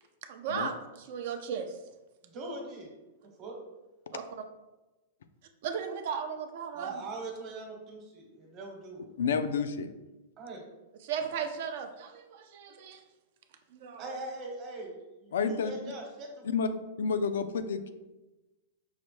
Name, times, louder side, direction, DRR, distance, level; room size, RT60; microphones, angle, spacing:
voice 1, 0.3-1.8 4.1-4.2 5.6-7.0 11.0-13.0 13.7-14.1, right 7 dB, 60° right, 6 dB, 0.4 m, -36 dB
voice 2, 2.2-2.9 3.4-3.6 6.7-9.1 10.4-10.6 14.0-14.9 15.2-16.4, right 2 dB, 35° right, 0 dB, 0.9 m, -41 dB
voice 3, 9.2-9.9 15.3-15.7 16.4-16.7 17.0-17.9, left 5 dB, 85° left, 10 dB, 0.3 m, -29 dB
5.5 x 2.1 x 3.1 m, 1.1 s
hypercardioid pair, 140°, 0 cm